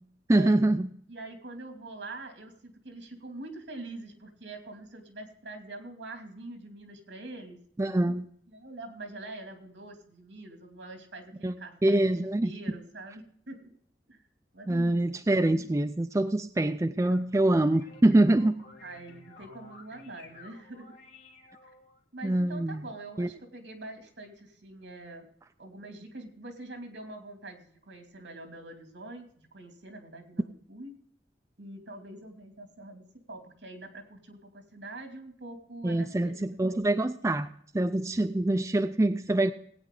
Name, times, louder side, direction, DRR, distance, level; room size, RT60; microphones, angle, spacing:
voice 1, 0.3-0.9 7.8-8.3 11.4-11.5 11.8-12.5 14.7-18.5 22.2-22.8 23.2-23.3 35.8-37.5 37.7-39.5, right 1 dB, 15° right, 8 dB, 0.4 m, -25 dB
voice 2, 1.1-7.6 8.5-13.7 14.1-14.2 14.5-15.2 18.8-20.9 21.6-21.7 22.1-25.3 25.6-30.9 31.6-36.8, right 2 dB, 75° right, 4 dB, 2.5 m, -44 dB
sound 1, 17.0-22.0, left 3 dB, 70° left, 1.9 m, -53 dB
18.5 x 9.0 x 3.8 m, 0.63 s
head